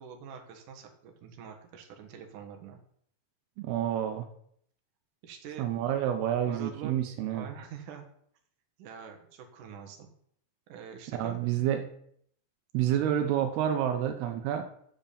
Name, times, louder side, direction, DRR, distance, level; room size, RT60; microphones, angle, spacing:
voice 1, 0.0-2.8 5.2-5.7 6.5-7.0 7.3-8.0 8.8-10.1 10.7-11.6 13.0-13.4, right 7 dB, 60° right, 3 dB, 2.6 m, -45 dB
voice 2, 3.6-4.3 5.6-7.5 11.1-11.9 12.7-14.7, right 10 dB, 80° right, 6 dB, 2.8 m, -29 dB
8.1 x 7.1 x 6.8 m, 0.66 s
omnidirectional pair, 4.6 m